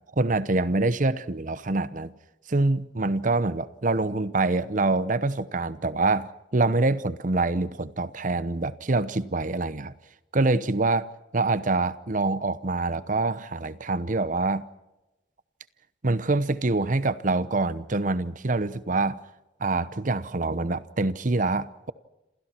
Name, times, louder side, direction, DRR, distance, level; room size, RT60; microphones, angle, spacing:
voice 1, 0.2-2.1 2.5-9.9 10.3-11.1 11.3-14.7 16.0-19.2 19.6-21.9, right 2 dB, 45° right, 0.9 m, -25 dB
28.0 x 27.5 x 4.5 m
head